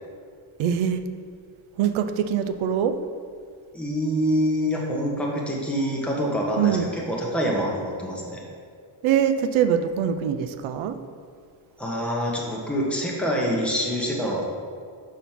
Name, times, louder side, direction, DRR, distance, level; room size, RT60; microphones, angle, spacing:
voice 1, 0.6-1.0 1.8-2.9 6.6-6.9 9.0-11.0, right 8 dB, 75° right, 9 dB, 0.7 m, -23 dB
voice 2, 3.7-8.4 11.8-14.4, equal, ahead, -4 dB, 1.3 m, -26 dB
6.3 x 5.4 x 5.9 m, 2.1 s
cardioid pair, 155°, 48 cm